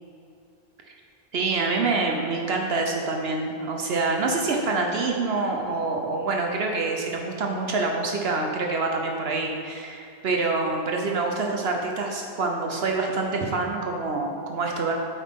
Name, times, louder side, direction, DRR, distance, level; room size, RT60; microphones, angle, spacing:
voice 1, 1.3-14.9, right 3 dB, 70° right, 1 dB, 1.1 m, -26 dB
8.9 x 8.2 x 3.7 m, 2.7 s
omnidirectional pair, 1.1 m